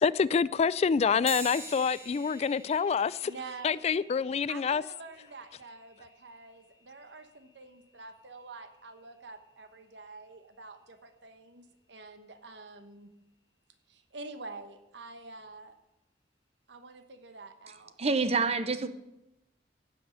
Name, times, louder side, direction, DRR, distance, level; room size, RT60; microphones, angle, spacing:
voice 1, 0.0-3.3 3.6-4.8, left 6 dB, 35° left, 0.3 m, -27 dB
sound 1, 1.3-11.1, right 3 dB, 15° right, 1.5 m, -48 dB
voice 2, 3.2-3.8 4.5-13.1 13.9-15.7 16.7-17.9, right 3 dB, 85° right, 1.1 m, -47 dB
voice 3, 18.0-18.9, right 4 dB, 35° right, 0.8 m, -27 dB
16.0 x 6.1 x 6.6 m
head